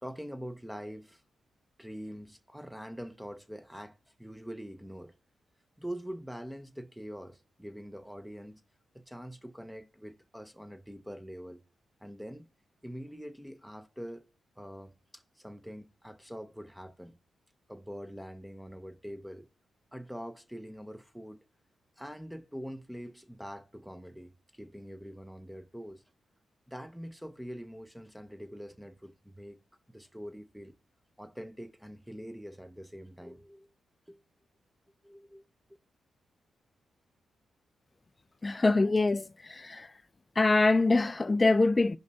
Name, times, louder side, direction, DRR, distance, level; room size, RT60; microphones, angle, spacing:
voice 1, 0.0-1.2 1.8-5.1 5.8-8.6 8.9-11.6 12.0-12.5 12.8-14.3 14.6-17.2 17.7-19.5 19.9-21.4 22.0-26.0 26.7-29.6 29.9-30.8 31.2-33.7 34.1-34.2 35.0-35.4, equal, 5° right, 0.7 m, -44 dB
voice 2, 38.4-39.9 40.4-42.0, left 3 dB, 30° left, 0.3 m, -24 dB
15.5 x 5.3 x 2.6 m
supercardioid pair, 55°, 0 cm